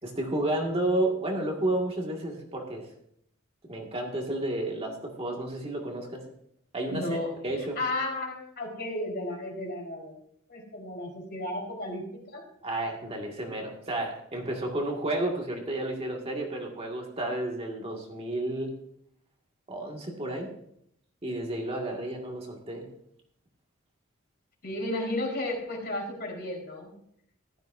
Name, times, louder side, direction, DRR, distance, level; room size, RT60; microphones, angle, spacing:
voice 1, 0.0-2.9 3.7-6.2 6.7-7.2 7.4-7.8 12.6-18.7 19.7-20.5 21.2-22.9, right 1 dB, 30° right, 0 dB, 1.9 m, -31 dB
voice 2, 6.9-7.3 7.8-10.1 10.5-12.4 24.6-26.9, left 1 dB, 50° left, 0 dB, 4.2 m, -33 dB
15.0 x 12.5 x 2.6 m, 0.69 s
head